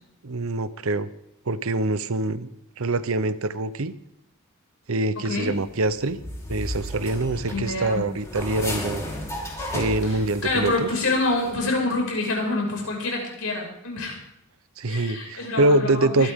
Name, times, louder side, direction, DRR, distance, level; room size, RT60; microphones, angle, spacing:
voice 1, 0.2-1.1 1.5-2.5 2.8-3.9 4.9-6.2 6.5-9.0 9.7-10.9 14.8-16.3, right 2 dB, 65° right, 14 dB, 0.8 m, -24 dB
voice 2, 5.2-5.5 7.5-8.0 10.0-14.2 14.9-16.3, left 2 dB, 70° left, 0 dB, 6.0 m, -27 dB
sound 1, 5.5-10.9 11.2-11.5, left 1 dB, 15° left, 3.9 m, -34 dB
24.0 x 12.5 x 3.7 m, 0.79 s
head